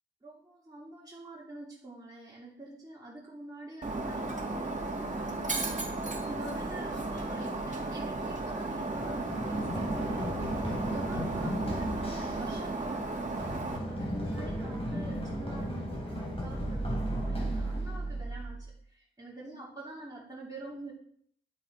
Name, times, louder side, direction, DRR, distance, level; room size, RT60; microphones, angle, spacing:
voice 1, 0.2-20.9, right 2 dB, 20° right, -6 dB, 2.8 m, -46 dB
Shatter, 3.8-13.8, right 2 dB, 40° right, 2.1 m, -35 dB
Run, 8.9-18.7, right 1 dB, 30° left, 3.9 m, -35 dB
10.5 x 7.9 x 4.8 m, 0.62 s
wide cardioid pair, 100°, 20 cm